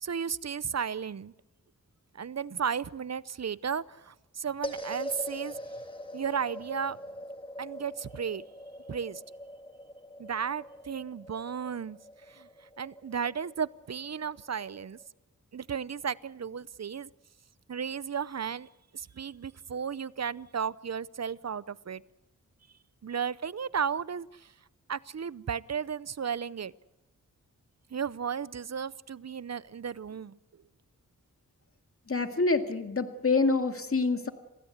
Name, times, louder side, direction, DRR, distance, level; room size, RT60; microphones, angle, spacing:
voice 1, 0.0-1.3 2.1-5.6 6.1-7.0 7.6-8.4 8.9-9.2 10.2-12.0 12.3-12.5 12.8-15.0 15.5-17.1 17.7-18.7 18.9-22.0 23.0-24.5 24.9-26.7 27.9-30.4, right 7 dB, 55° right, 19 dB, 0.7 m, -34 dB
sound 1, 4.6-15.1, equal, 15° left, 1.8 m, -43 dB
voice 2, 32.1-34.3, left 3 dB, 45° left, 7 dB, 2.1 m, -26 dB
27.0 x 16.5 x 8.1 m, 1.0 s
cardioid pair, 50°, 33 cm